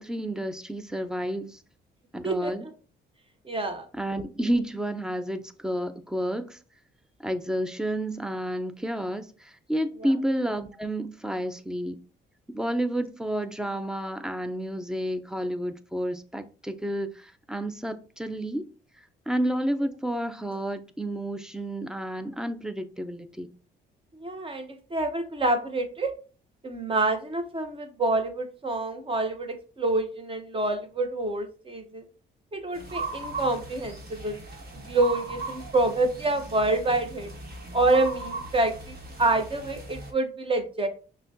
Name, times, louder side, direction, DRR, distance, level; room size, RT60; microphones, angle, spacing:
voice 1, 0.0-1.6 2.1-2.7 3.9-6.6 7.2-12.0 12.5-18.7 19.0-23.5, right 1 dB, 5° right, 0.4 m, -30 dB
voice 2, 2.2-2.7 3.4-3.8 24.1-26.1 26.6-32.1 32.5-34.4 34.9-37.3 37.7-40.9, right 2 dB, 25° right, 0.8 m, -27 dB
sound 1, 32.7-40.1, right 3 dB, 50° right, 1.2 m, -38 dB
5.7 x 2.2 x 2.7 m
cardioid pair, 90°, 20 cm